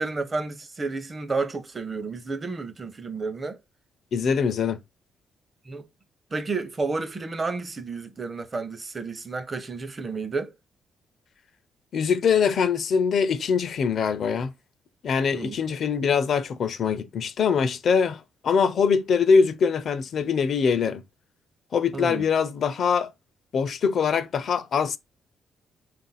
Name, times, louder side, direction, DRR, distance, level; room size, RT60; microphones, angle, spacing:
voice 1, 0.0-3.6 5.7-5.8 6.3-10.5 15.3-15.6 21.9-22.2, right 3 dB, 30° right, 0.6 m, -31 dB
voice 2, 4.1-4.8 11.9-14.5 15.0-21.0 21.7-23.1 23.5-25.0, left 6 dB, 60° left, 0.4 m, -23 dB
3.6 x 2.5 x 3.9 m
cardioid pair, 90°, 0 cm